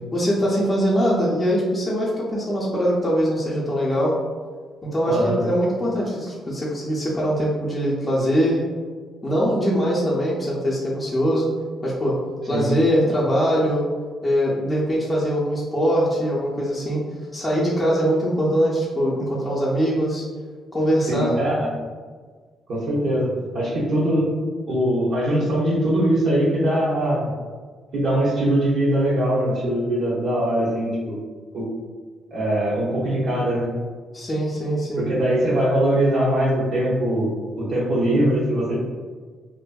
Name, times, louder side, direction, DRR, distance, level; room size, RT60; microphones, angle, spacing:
voice 1, 0.1-4.2 4.8-8.6 9.2-11.5 11.8-12.2 12.5-13.8 14.2-17.0 17.3-20.2 20.7-21.4 34.1-35.1, equal, 20° left, -7 dB, 0.6 m, -22 dB
voice 2, 5.1-5.4 12.5-12.7 21.1-21.7 22.7-24.3 24.7-27.3 27.9-31.2 31.5-31.7 32.3-33.7 35.0-37.3 37.6-38.7, right 1 dB, 70° right, -9 dB, 0.8 m, -21 dB
2.6 x 2.5 x 2.2 m, 1.5 s
cardioid pair, 90°, 0 cm